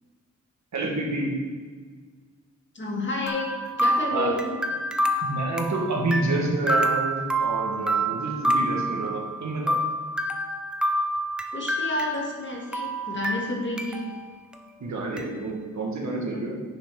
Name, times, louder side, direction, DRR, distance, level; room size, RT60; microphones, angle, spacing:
voice 1, 0.7-1.3 4.1-4.3 5.2-9.8 14.8-16.6, right 2 dB, 65° right, -1 dB, 1.7 m, -28 dB
voice 2, 2.7-3.5 3.8-4.6 11.5-14.1 15.1-15.3 16.3-16.5, left 1 dB, 40° left, -1 dB, 1.7 m, -30 dB
sound 1, 3.3-12.5 12.7-14.2 14.5-14.6 15.2-15.3, right 1 dB, 5° right, 0.6 m, -27 dB
10.0 x 5.7 x 3.9 m, 1.5 s
wide cardioid pair, 100°, 30 cm